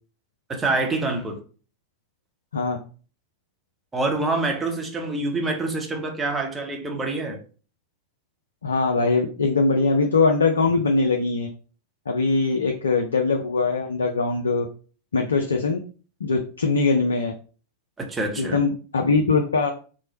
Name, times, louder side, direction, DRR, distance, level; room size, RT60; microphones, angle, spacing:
voice 1, 0.5-1.4 3.9-7.4 18.0-18.6, right 2 dB, 15° right, 0.8 m, -26 dB
voice 2, 8.6-11.5 12.1-14.7 15.1-15.8 16.2-17.3 18.4-19.7, left 3 dB, 70° left, 0.4 m, -21 dB
3.1 x 2.1 x 4.0 m
figure-of-eight pair, 90°, 0 cm